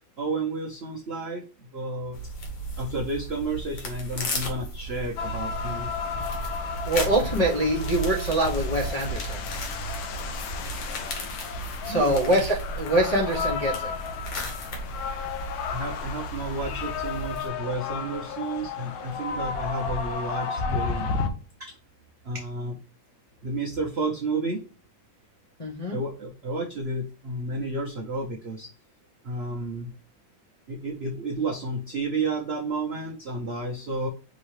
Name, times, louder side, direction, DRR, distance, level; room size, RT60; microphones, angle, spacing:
voice 1, 0.2-2.3 2.8-5.9 11.9-12.4 15.7-21.1 21.6-21.8 22.2-22.8 23.4-24.6 25.9-28.7 29.2-29.9 30.7-34.1, right 2 dB, 70° right, 0 dB, 0.6 m, -31 dB
sound 1, 2.1-17.5, right 1 dB, 65° left, 1.9 m, -35 dB
sound 2, 5.2-21.3, left 5 dB, 85° left, 1.5 m, -33 dB
voice 2, 6.9-9.4 11.8-14.0 25.6-26.0, right 1 dB, 35° left, -5 dB, 0.6 m, -24 dB
5.3 x 2.9 x 3.2 m, 0.35 s
omnidirectional pair, 2.2 m